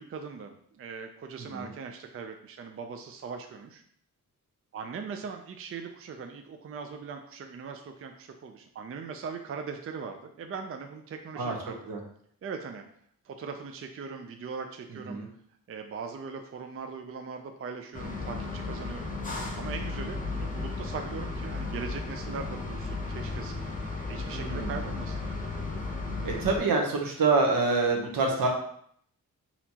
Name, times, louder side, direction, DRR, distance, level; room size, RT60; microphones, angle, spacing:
voice 1, 0.0-3.8 4.7-11.9 12.4-12.8 13.2-15.2 15.7-19.1 19.6-23.6 24.1-25.2, right 5 dB, 40° right, 5 dB, 0.4 m, -40 dB
sound 1, 17.9-26.6, left 3 dB, 25° left, 0.7 m, -34 dB
voice 2, 24.3-24.7 26.2-28.5, right 3 dB, 75° right, 1 dB, 0.9 m, -26 dB
4.2 x 2.8 x 2.8 m, 0.64 s
cardioid pair, 80°, 35 cm